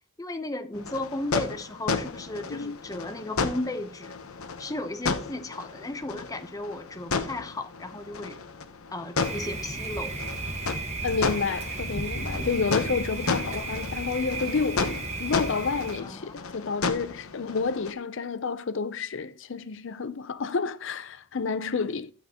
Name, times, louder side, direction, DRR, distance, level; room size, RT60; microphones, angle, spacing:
voice 1, 0.0-4.2 4.6-8.4 8.9-10.2 16.0-16.3, left 2 dB, 15° left, 0.7 m, -35 dB
sound 1, 0.7-17.9, left 4 dB, 90° left, 0.9 m, -33 dB
Thunder, 9.2-16.0, right 2 dB, 30° right, 1.3 m, -34 dB
voice 2, 11.0-22.1, left 5 dB, 60° left, 0.6 m, -30 dB
9.9 x 8.6 x 2.9 m
head